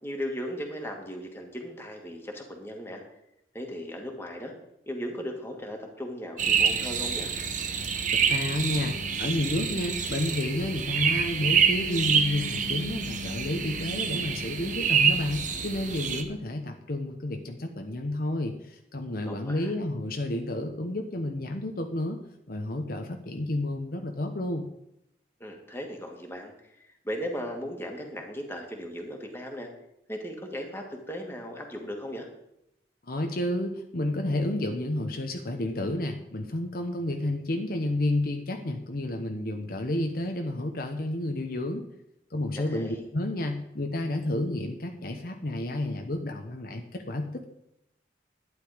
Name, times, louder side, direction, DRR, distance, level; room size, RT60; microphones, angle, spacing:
voice 1, 0.0-3.0 3.5-4.5 4.9-7.3 19.3-19.7 25.4-29.7 30.1-32.3 42.6-43.0, equal, 15° left, 1 dB, 2.1 m, -37 dB
sound 1, 6.4-16.2, right 6 dB, 45° right, 1.1 m, -27 dB
voice 2, 8.1-22.2 22.5-24.7 33.1-41.8 42.3-47.4, left 1 dB, 55° left, 4 dB, 1.0 m, -30 dB
12.0 x 10.0 x 5.1 m, 0.82 s
head